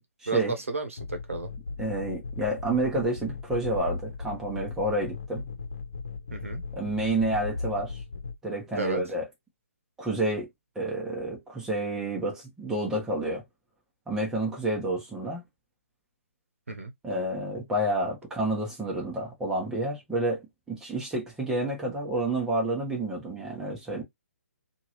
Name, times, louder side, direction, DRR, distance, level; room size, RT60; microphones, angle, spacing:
voice 1, 0.3-1.5 6.3-6.6 8.7-9.0 16.7-16.9, right 3 dB, 70° right, 0.9 m, -32 dB
sound 1, 1.0-8.4, left 4 dB, 60° left, 1.1 m, -37 dB
voice 2, 1.8-5.4 6.7-7.9 8.4-9.2 10.0-10.5 10.7-13.4 14.1-15.4 17.0-24.0, right 1 dB, 5° right, 1.1 m, -29 dB
2.9 x 2.6 x 3.0 m
figure-of-eight pair, 135°, 8 cm